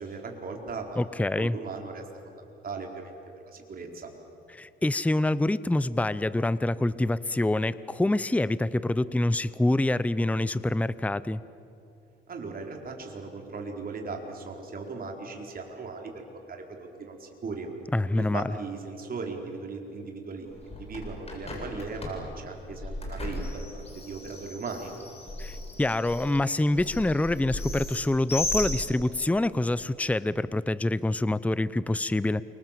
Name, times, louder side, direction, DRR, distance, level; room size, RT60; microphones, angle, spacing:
voice 1, 0.0-1.0 1.4-3.1 3.4-4.1 12.3-17.7 18.2-24.9, right 4 dB, 45° right, 2 dB, 4.7 m, -38 dB
voice 2, 1.0-1.6 4.5-11.4 17.9-18.4 25.4-32.4, left 2 dB, 5° left, 17 dB, 0.7 m, -26 dB
Bird, 20.5-29.3, left 2 dB, 30° left, 7.4 m, -36 dB
29.0 x 25.5 x 7.6 m, 2.7 s
cardioid pair, 90°, 20 cm